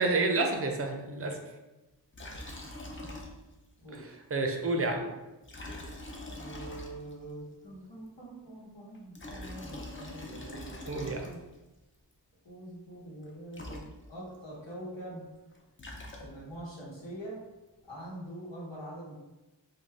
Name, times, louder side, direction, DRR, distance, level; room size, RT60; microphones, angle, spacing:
voice 1, 0.0-1.4 4.3-5.1 10.9-11.3, right 3 dB, 35° right, 3 dB, 0.5 m, -29 dB
Liquid, 2.1-3.7 3.9-4.0 5.4-7.3 8.9-11.6 13.2-13.3 13.5-14.4 15.5-16.6, left 1 dB, 30° left, 0.5 m, -43 dB
voice 2, 6.3-11.4 12.4-15.3 16.2-17.4 17.9-19.2, right 1 dB, 80° left, -6 dB, 1.2 m, -44 dB
2.6 x 2.3 x 3.4 m, 1.1 s
cardioid pair, 40°, 44 cm